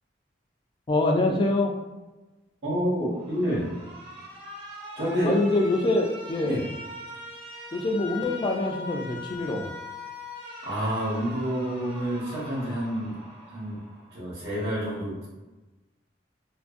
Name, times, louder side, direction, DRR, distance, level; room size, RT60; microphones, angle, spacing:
voice 1, 0.9-1.7 5.2-6.6 7.7-9.7, left 2 dB, 25° left, 2 dB, 0.3 m, -25 dB
voice 2, 2.6-3.7 5.0-5.3 6.4-6.6 10.6-13.1 13.5-13.8 14.1-15.3, equal, 90° right, -6 dB, 1.1 m, -28 dB
Alarm, 3.2-14.2, left 2 dB, 30° right, 0.7 m, -41 dB
2.6 x 2.5 x 2.4 m, 1.1 s
head